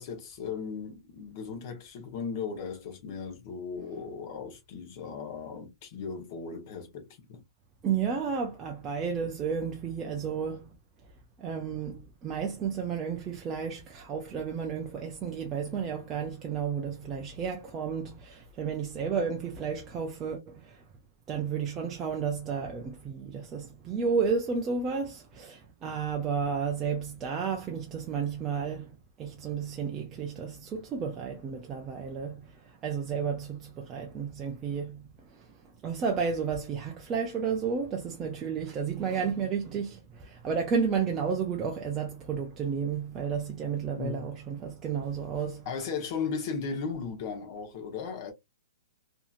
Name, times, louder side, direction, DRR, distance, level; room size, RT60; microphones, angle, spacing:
voice 1, 0.0-7.4 44.0-44.3 45.7-48.3, left 5 dB, 35° left, 0.9 m, -36 dB
voice 2, 7.8-10.7 11.4-20.8 21.3-35.5 35.8-45.7, right 6 dB, 15° right, 0.3 m, -32 dB
2.8 x 2.6 x 2.3 m
hypercardioid pair, 170°, 2 cm